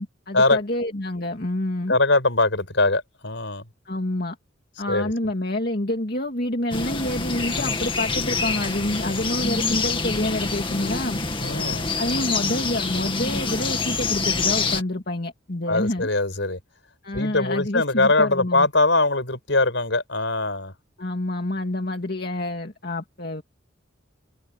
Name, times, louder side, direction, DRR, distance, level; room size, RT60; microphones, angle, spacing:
voice 1, 0.0-2.0 3.9-4.4 4.8-11.2 12.0-16.1 17.0-18.7 21.0-23.4, left 1 dB, 50° left, 2.2 m, -27 dB
voice 2, 1.9-3.6 4.9-5.1 11.4-11.9 15.7-16.6 17.1-20.7, left 2 dB, 65° left, 6.2 m, -22 dB
sound 1, 6.7-14.8, left 4 dB, 25° left, 2.3 m, -26 dB
head